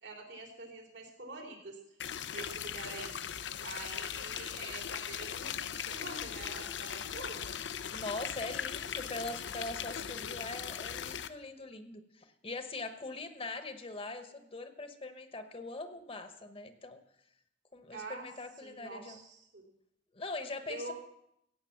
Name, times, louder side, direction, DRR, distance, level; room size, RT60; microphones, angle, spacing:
voice 1, 0.0-3.1 3.6-7.5 17.9-18.3 18.6-19.6 20.7-20.9, right 2 dB, 80° right, 2 dB, 3.3 m, -46 dB
sound 1, 2.0-11.3, left 8 dB, 85° left, 0.6 m, -39 dB
voice 2, 7.9-17.0 17.7-19.2 20.1-20.9, left 2 dB, 35° left, 9 dB, 1.0 m, -42 dB
15.5 x 8.6 x 5.8 m, 0.76 s
head